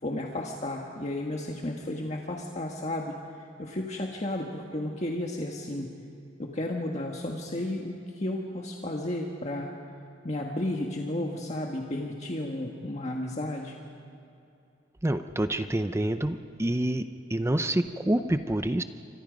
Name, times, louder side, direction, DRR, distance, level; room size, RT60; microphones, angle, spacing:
voice 1, 0.0-3.1 3.6-5.9 6.4-9.7 10.2-13.7, left 1 dB, 40° left, 0 dB, 1.5 m, -33 dB
voice 2, 15.0-18.8, right 1 dB, 15° right, 9 dB, 0.6 m, -27 dB
28.5 x 24.5 x 5.2 m, 2.6 s
head